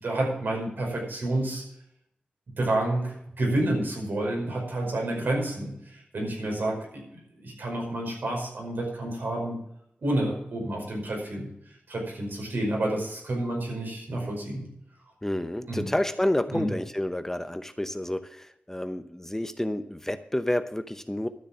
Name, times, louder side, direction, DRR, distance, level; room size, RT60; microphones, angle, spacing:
voice 1, 0.0-1.6 2.6-9.6 10.0-11.5 11.9-14.7 15.7-15.9 16.5-16.7, right 1 dB, 75° right, 0 dB, 5.4 m, -29 dB
voice 2, 15.2-21.3, left 1 dB, 10° left, 10 dB, 0.8 m, -29 dB
12.5 x 6.9 x 7.2 m, 0.75 s
cardioid pair, 55°, 3 cm